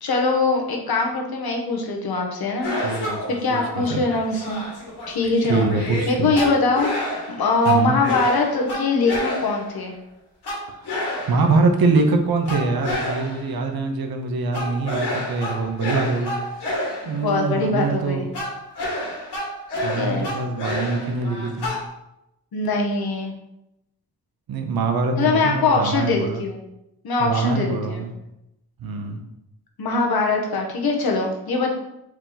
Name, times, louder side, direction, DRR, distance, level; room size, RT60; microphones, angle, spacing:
voice 1, 0.0-2.7 3.0-4.6 5.1-10.0 17.0-18.3 19.9-20.3 22.5-23.3 25.2-26.6 27.0-28.0 29.8-31.7, left 3 dB, 70° left, 1 dB, 1.0 m, -22 dB
sound 1, 2.6-9.8 10.4-11.7 12.5-13.5 14.5-17.3 18.3-21.9, left 1 dB, 85° left, 1.7 m, -29 dB
voice 2, 2.8-3.2 3.5-4.0 5.5-6.3 7.7-7.9 11.3-16.3 17.0-18.2 19.8-21.7 24.5-26.4 27.2-28.1 28.8-29.2, right 3 dB, 65° right, 4 dB, 0.8 m, -23 dB
4.7 x 3.0 x 3.9 m, 0.86 s
cardioid pair, 90°, 39 cm